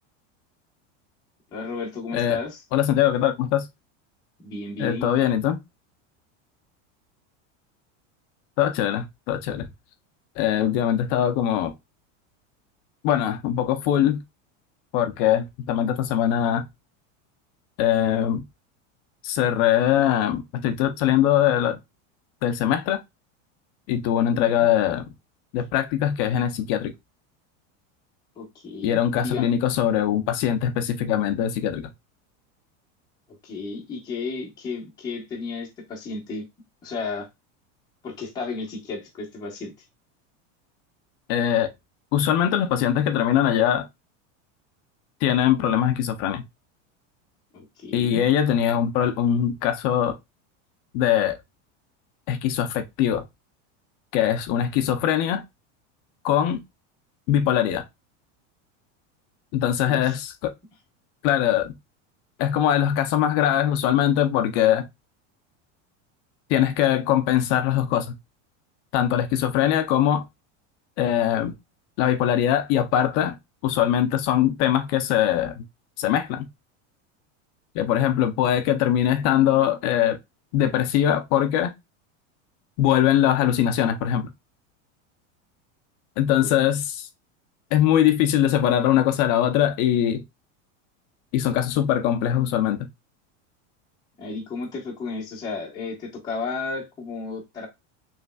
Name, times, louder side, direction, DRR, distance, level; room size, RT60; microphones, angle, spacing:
voice 1, 1.5-2.6 4.4-5.3 28.4-29.5 33.4-36.5 36.8-37.3 38.0-39.7 47.5-48.2 59.8-60.2 86.4-86.5 94.2-97.7, left 4 dB, 10° left, 0.9 m, -33 dB
voice 2, 2.7-3.7 4.8-5.6 8.6-9.6 10.4-11.7 13.0-14.2 14.9-16.6 17.8-18.4 19.2-21.8 22.4-23.0 23.9-25.0 25.5-26.9 28.8-31.9 41.3-41.7 42.1-43.9 45.2-46.4 47.9-50.2 50.9-51.4 52.3-53.2 54.1-55.4 56.2-56.6 57.3-57.8 59.5-60.5 61.2-61.8 62.4-64.9 66.5-68.1 68.9-70.2 71.0-71.5 72.0-73.4 73.6-75.6 76.0-76.5 77.7-80.2 80.5-81.7 82.8-84.3 86.2-87.1 87.7-90.2 91.3-92.9, left 10 dB, 35° left, 0.5 m, -22 dB
5.1 x 3.2 x 2.3 m
supercardioid pair, 175°, 37 cm